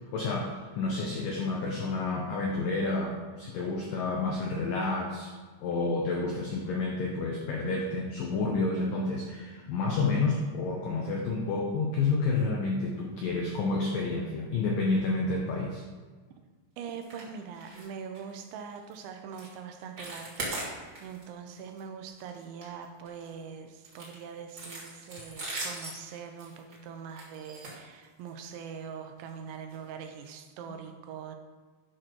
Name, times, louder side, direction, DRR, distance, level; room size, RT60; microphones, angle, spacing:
voice 1, 0.1-5.3 5.6-15.8, left 3 dB, 80° left, 0 dB, 1.9 m, -30 dB
voice 2, 16.8-31.4, right 7 dB, 85° right, 6 dB, 3.1 m, -43 dB
sound 1, 17.0-17.3 17.5-17.9 18.1-18.3 18.8-18.9 19.3-19.5 19.8-21.2 21.6-21.8 22.2-23.3 23.8-28.4 29.2-29.3 29.7-29.8 30.2-30.3, right 2 dB, 30° right, 2.2 m, -40 dB
11.5 x 5.1 x 6.0 m, 1.5 s
omnidirectional pair, 5.4 m